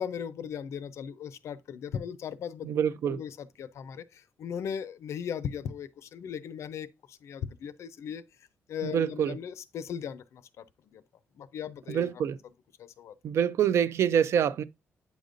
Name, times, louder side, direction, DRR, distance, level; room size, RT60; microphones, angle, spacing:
voice 1, 0.0-2.7 3.1-3.3 3.6-8.2 8.7-10.6 10.9-11.0 11.4-12.1 12.8-13.1, left 8 dB, 70° left, 0.5 m, -37 dB
voice 2, 2.6-3.2 8.8-9.4 11.9-12.4 13.2-14.6, right 8 dB, 65° right, 0.4 m, -26 dB
8.2 x 5.1 x 2.5 m
wide cardioid pair, 165°, 5 cm